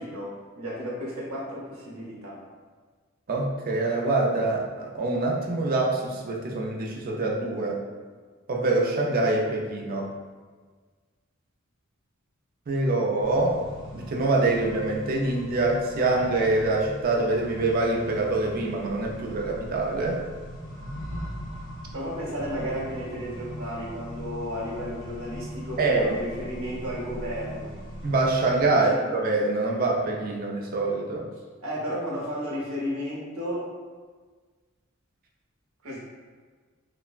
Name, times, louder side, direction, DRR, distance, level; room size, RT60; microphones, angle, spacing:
voice 1, 0.0-2.4 21.9-27.7 28.7-29.0 31.6-33.7 35.8-36.0, equal, 80° right, -4 dB, 0.8 m, -33 dB
voice 2, 3.3-7.8 8.5-10.1 12.7-13.6 13.9-20.2 25.8-26.2 28.0-31.3, right 2 dB, 45° right, -1 dB, 0.4 m, -25 dB
Accelerating revving vroom, 13.2-28.6, equal, 55° left, 1.1 m, -40 dB
3.2 x 2.0 x 2.4 m, 1.5 s
head